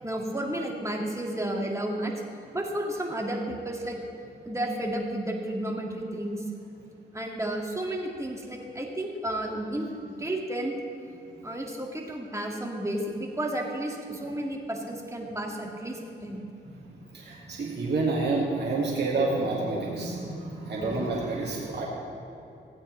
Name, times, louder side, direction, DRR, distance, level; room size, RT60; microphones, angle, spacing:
voice 1, 0.0-2.1 2.5-4.0 4.4-6.4 7.1-9.9 10.2-10.8 11.4-16.4 20.8-21.1, right 1 dB, 15° right, 0 dB, 1.8 m, -32 dB
voice 2, 17.1-21.8, right 3 dB, 60° right, -5 dB, 1.8 m, -28 dB
15.5 x 8.8 x 3.1 m, 2.8 s
cardioid pair, 55°, 20 cm